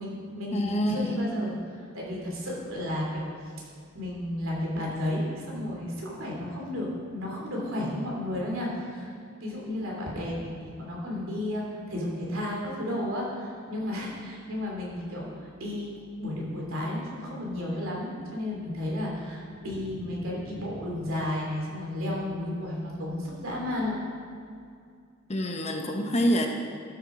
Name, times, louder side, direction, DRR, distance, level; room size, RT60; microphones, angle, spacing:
voice 1, 0.0-3.3 3.9-9.1 9.4-15.9 16.2-24.0, left 1 dB, 75° right, -3 dB, 3.0 m, -33 dB
voice 2, 0.5-1.3 25.3-26.5, equal, 30° left, 3 dB, 0.9 m, -26 dB
12.5 x 7.3 x 4.9 m, 2.3 s
head